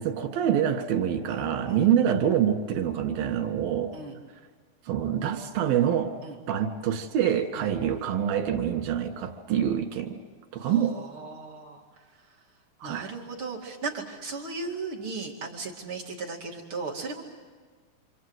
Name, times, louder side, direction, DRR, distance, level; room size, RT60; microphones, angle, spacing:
voice 1, 0.0-3.9 4.9-6.2 6.5-10.2 10.5-11.0 12.8-13.1, right 9 dB, 80° right, 5 dB, 3.5 m, -26 dB
voice 2, 1.3-1.9 3.9-4.2 6.2-6.4 7.5-7.7 10.6-11.8 12.8-17.2, right 4 dB, 40° right, -3 dB, 2.9 m, -37 dB
27.5 x 27.0 x 8.0 m, 1.5 s
omnidirectional pair, 4.1 m